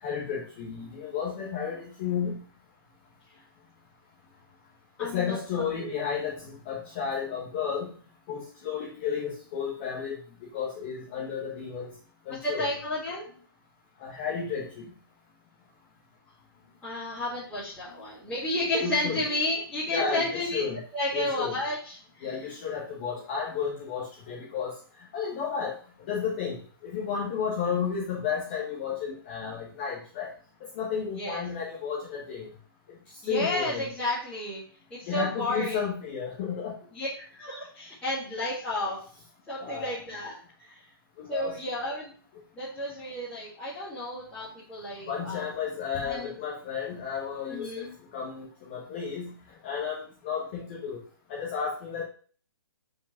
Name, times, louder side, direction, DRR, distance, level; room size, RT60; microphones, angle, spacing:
voice 1, 0.0-2.4 5.0-7.9 8.3-10.2 10.5-11.9 12.2-12.7 14.0-14.8 18.8-19.2 19.9-20.8 21.1-21.5 22.2-24.7 25.1-25.7 26.0-30.3 30.7-32.5 33.3-33.9 35.0-36.7 39.6-40.0 41.2-41.6 45.1-47.9 48.1-49.3 49.6-51.0 51.3-52.0, left 6 dB, 25° left, -4 dB, 1.5 m, -32 dB
voice 2, 5.0-5.9 12.4-13.3 16.8-20.6 20.9-22.3 31.2-31.4 33.2-34.6 34.9-35.8 36.9-39.0 39.5-40.7 41.3-42.1 42.5-45.5 46.0-46.3 47.5-47.9, left 1 dB, 5° left, -13 dB, 2.5 m, -32 dB
5.4 x 5.0 x 6.1 m, 0.43 s
hypercardioid pair, 170°, 13 cm